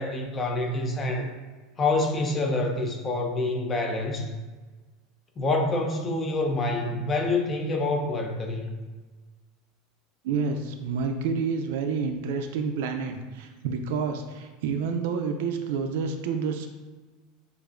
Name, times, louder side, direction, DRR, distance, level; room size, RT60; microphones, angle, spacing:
voice 1, 0.0-1.3 1.8-4.3 5.4-8.8, left 2 dB, 20° left, 2 dB, 0.5 m, -27 dB
voice 2, 10.2-16.7, right 5 dB, 70° right, 6 dB, 0.4 m, -29 dB
6.7 x 2.5 x 2.5 m, 1.3 s
supercardioid pair, 165°, 0 cm